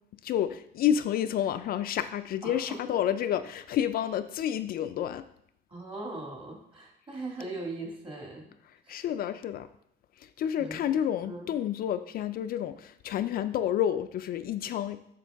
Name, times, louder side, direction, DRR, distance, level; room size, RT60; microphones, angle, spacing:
voice 1, 0.2-5.2 8.9-9.7 10.2-15.0, left 10 dB, 60° left, 10 dB, 0.4 m, -29 dB
voice 2, 2.4-3.0 3.3-3.4 5.7-8.5 8.8-9.0 10.6-11.5, right 2 dB, 30° right, 0 dB, 1.9 m, -40 dB
8.4 x 6.0 x 3.4 m, 0.74 s
cardioid pair, 135°, 18 cm